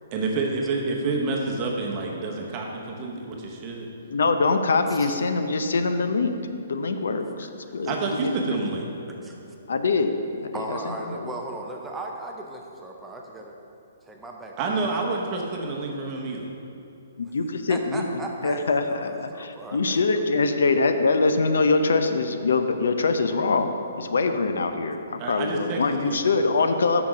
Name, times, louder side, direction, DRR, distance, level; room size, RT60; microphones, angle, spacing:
voice 1, 0.1-3.9 7.9-8.9 14.6-16.5 25.2-26.2, right 3 dB, 20° right, 0 dB, 0.8 m, -28 dB
voice 2, 4.1-6.3 6.7-7.5 7.7-7.9 8.2-8.3 9.7-10.1 10.4-10.8 17.2-18.1 18.4-27.0, left 3 dB, 85° left, 8 dB, 0.6 m, -23 dB
voice 3, 4.9-5.2 7.4-7.7 9.2-9.3 10.5-13.5 14.0-14.8 15.5-15.7 17.7-20.2, right 2 dB, 5° right, 0 dB, 0.4 m, -37 dB
5.9 x 5.9 x 6.3 m, 2.8 s
hypercardioid pair, 170°, 0 cm